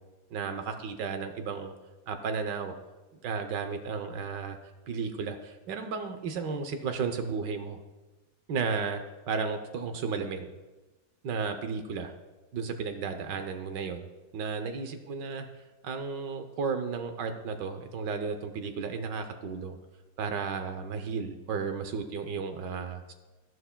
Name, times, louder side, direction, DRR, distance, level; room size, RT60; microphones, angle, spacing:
voice 1, 0.3-1.7 2.1-2.7 3.2-4.6 4.9-7.8 8.5-9.0 9.3-10.5 11.2-12.1 12.5-14.1 14.3-15.5 15.8-19.8 20.2-23.1, right 5 dB, 65° right, 7 dB, 1.4 m, -33 dB
14.0 x 11.0 x 2.2 m, 1.1 s
omnidirectional pair, 2.1 m